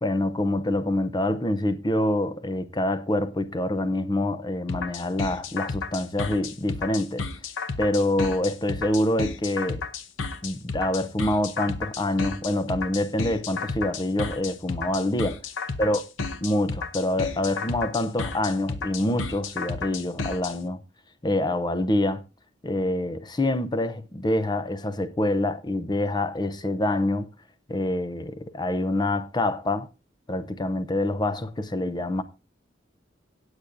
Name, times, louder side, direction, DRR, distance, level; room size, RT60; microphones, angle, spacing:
voice 1, 0.0-7.2 7.8-9.8 10.4-15.3 15.8-16.0 16.4-20.8 21.2-22.2 22.6-27.3 27.7-29.9 30.3-32.2, left 1 dB, 20° left, 0.6 m, -26 dB
sound 1, 4.7-20.5, left 4 dB, 85° left, 0.9 m, -32 dB
17.0 x 8.1 x 2.6 m
head